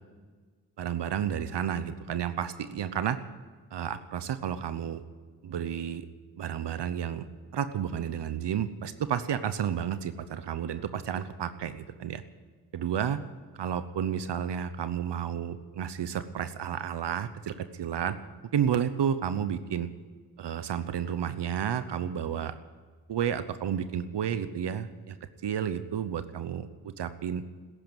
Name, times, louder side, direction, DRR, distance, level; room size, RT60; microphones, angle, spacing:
voice 1, 0.8-3.2 3.7-5.0 5.4-6.0 6.4-7.3 7.5-12.2 12.7-13.2 13.6-18.1 18.5-19.9 20.4-22.5 23.1-25.2 25.4-27.4, right 9 dB, 85° right, 11 dB, 0.9 m, -31 dB
14.5 x 11.0 x 9.3 m, 1.5 s
cardioid pair, 60°, 40 cm